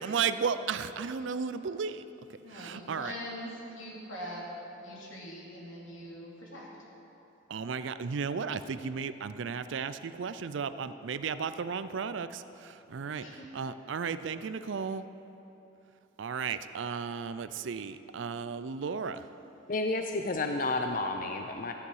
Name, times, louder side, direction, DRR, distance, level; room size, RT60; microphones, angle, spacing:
voice 1, 0.0-3.1 7.5-13.3 13.5-15.0 16.2-19.3, right 6 dB, 70° right, 13 dB, 0.4 m, -34 dB
voice 2, 2.4-6.7 13.2-13.6, equal, 90° left, -4 dB, 2.9 m, -42 dB
voice 3, 19.7-21.7, left 2 dB, 45° left, 4 dB, 0.5 m, -31 dB
13.5 x 9.7 x 4.8 m, 2.9 s
head